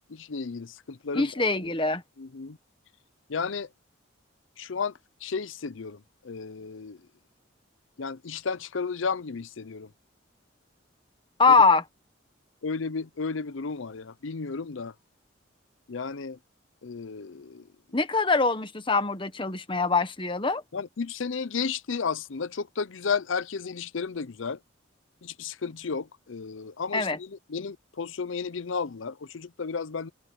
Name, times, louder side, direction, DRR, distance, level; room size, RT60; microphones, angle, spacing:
voice 1, 0.1-1.7 2.2-2.6 3.3-3.7 4.6-4.9 5.2-7.1 8.0-9.9 11.5-11.6 12.6-14.9 15.9-16.4 16.8-17.7 20.7-24.6 25.2-30.1, left 5 dB, 75° left, 0.6 m, -33 dB
voice 2, 1.1-2.0 11.4-11.8 17.9-20.6 26.9-27.2, left 4 dB, 25° left, 1.3 m, -23 dB
head